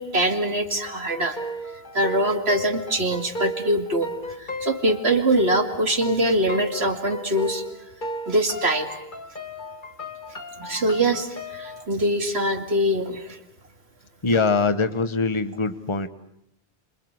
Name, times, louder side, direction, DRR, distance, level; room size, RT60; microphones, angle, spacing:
voice 1, 0.0-1.4 1.9-4.1 4.4-7.6 8.3-8.9 10.6-13.4, right 1 dB, 85° right, 5 dB, 2.7 m, -23 dB
sound 1, 0.8-11.8, equal, 50° left, 2.1 m, -35 dB
voice 2, 14.2-16.1, left 4 dB, 30° left, 12 dB, 1.2 m, -23 dB
28.5 x 26.0 x 8.0 m, 0.79 s
omnidirectional pair, 1.0 m